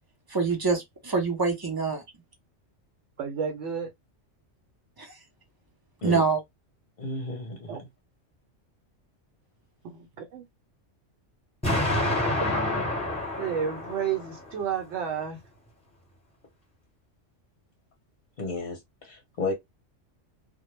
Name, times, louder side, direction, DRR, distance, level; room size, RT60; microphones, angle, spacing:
voice 1, 0.3-2.0 5.0-5.1 6.0-6.4, right 4 dB, 30° right, 0.4 m, -25 dB
voice 2, 3.2-3.9 7.7-7.8 9.8-10.5 12.4-12.9 13.4-15.4, right 7 dB, 75° right, 0.9 m, -31 dB
voice 3, 7.0-7.9 18.4-19.5, left 3 dB, 45° left, 0.7 m, -33 dB
Explosion, 11.6-14.6, left 1 dB, 5° left, 0.9 m, -28 dB
2.1 x 2.1 x 3.0 m
omnidirectional pair, 1.3 m